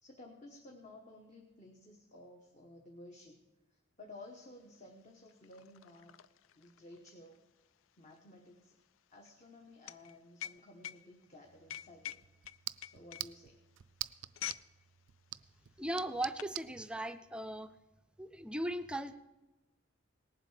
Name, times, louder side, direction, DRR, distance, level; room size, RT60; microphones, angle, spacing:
voice 1, 0.0-3.4 3.7-6.2 6.5-7.4 8.0-8.7 9.1-12.2 12.5-13.6, left 2 dB, 35° left, 1 dB, 1.2 m, -55 dB
sound 1, 4.4-4.5 4.8-14.7 15.0-15.3 15.9-16.6, left 11 dB, 90° left, 0.4 m, -47 dB
sound 2, 11.4-16.7, right 15 dB, 70° right, 0.4 m, -47 dB
voice 2, 15.8-17.7 18.2-19.2, right 1 dB, 5° right, 10 dB, 0.5 m, -38 dB
18.5 x 7.6 x 4.9 m, 1.1 s
head